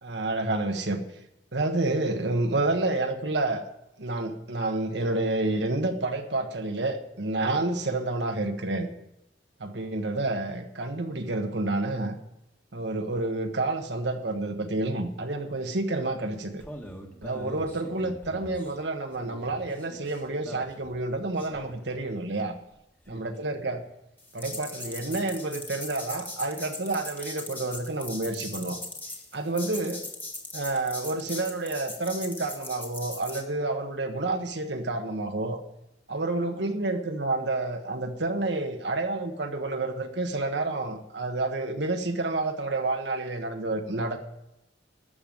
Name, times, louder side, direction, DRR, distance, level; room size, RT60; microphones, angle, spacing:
voice 1, 0.0-1.0 1.5-3.6 4.0-8.9 9.6-12.1 12.7-16.6 17.2-22.5 23.1-23.8 24.3-28.8 29.3-30.0 30.5-35.6 36.1-44.2, right 2 dB, 70° right, 4 dB, 1.4 m, -29 dB
sound 1, 16.6-18.8 19.1-22.1 23.0-23.6 24.2-33.4, left 2 dB, 10° left, 1.7 m, -41 dB
12.5 x 6.9 x 9.2 m, 0.86 s
head